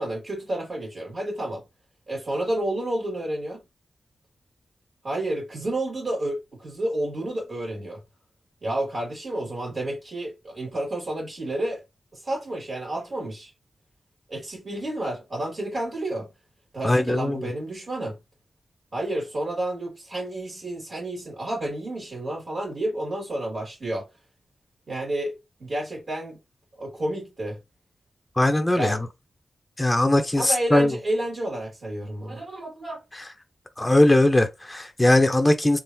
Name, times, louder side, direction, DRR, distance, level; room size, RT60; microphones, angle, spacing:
voice 1, 0.0-1.6 2.1-3.6 5.0-8.0 8.6-11.8 12.1-13.5 14.3-16.3 16.7-18.2 18.9-24.1 24.9-26.4 26.8-27.6 28.7-29.0 30.4-33.0, right 1 dB, 45° right, 2.0 m, -30 dB
voice 2, 16.8-17.4 28.4-29.1 29.8-31.0 33.1-33.3 33.8-35.8, left 1 dB, 15° left, 0.6 m, -20 dB
3.5 x 2.5 x 2.7 m
wide cardioid pair, 85°, 0 cm